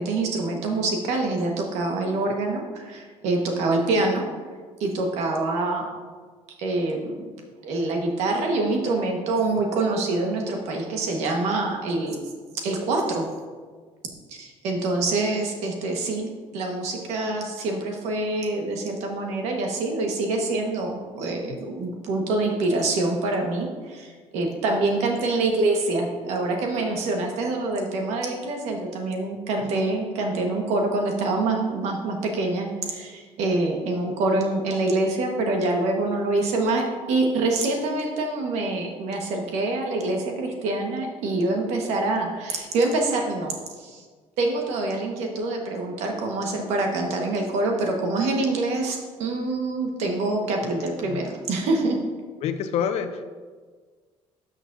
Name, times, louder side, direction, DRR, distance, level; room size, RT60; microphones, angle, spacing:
voice 1, 0.0-4.2 4.8-5.9 6.6-7.1 7.6-13.3 14.3-44.0 44.4-52.0, right 2 dB, 90° right, 2 dB, 1.4 m, -25 dB
voice 2, 52.4-53.3, left 8 dB, 70° left, 9 dB, 0.6 m, -28 dB
12.5 x 6.2 x 2.7 m, 1.5 s
cardioid pair, 120°, 11 cm